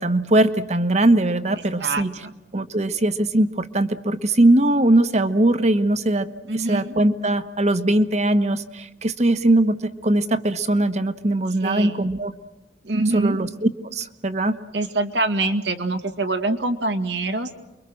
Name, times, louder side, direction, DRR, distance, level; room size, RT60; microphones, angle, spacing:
voice 1, 0.0-2.1 2.5-6.3 6.5-9.8 10.0-12.3 13.1-14.6, right 1 dB, 40° right, 10 dB, 1.1 m, -20 dB
voice 2, 1.8-2.3 6.5-6.9 11.6-12.1 12.8-13.4 14.7-17.5, right 2 dB, 85° right, 7 dB, 2.0 m, -24 dB
29.5 x 23.0 x 6.4 m, 1.0 s
head